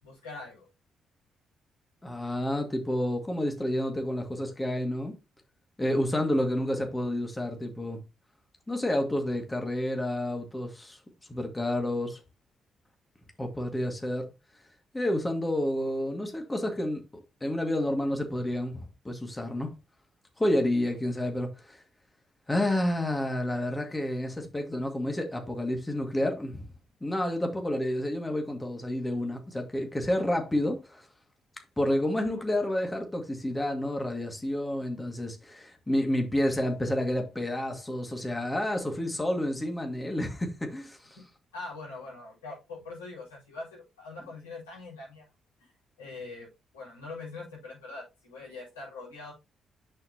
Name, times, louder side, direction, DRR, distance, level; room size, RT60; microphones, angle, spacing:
voice 1, 0.0-0.7 41.5-45.2 45.6-45.7 46.0-49.3, left 3 dB, 85° left, 4.3 m, -43 dB
voice 2, 2.0-5.1 5.8-8.0 8.7-11.0 11.3-12.2 13.4-14.3 14.9-19.7 20.4-21.8 22.5-26.7 27.0-31.1 31.8-41.2, left 1 dB, 15° left, 2.1 m, -30 dB
8.6 x 6.4 x 2.9 m
hypercardioid pair, 45°, 0 cm